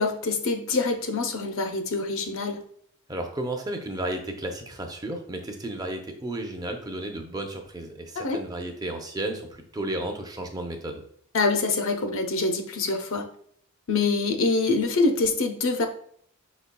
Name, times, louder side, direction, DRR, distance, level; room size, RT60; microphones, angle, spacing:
voice 1, 0.0-2.6 8.2-8.4 11.3-13.3 13.9-15.9, left 3 dB, 60° left, 5 dB, 0.6 m, -25 dB
voice 2, 3.1-11.0, right 1 dB, 15° right, 4 dB, 0.6 m, -33 dB
5.5 x 4.1 x 2.2 m, 0.63 s
head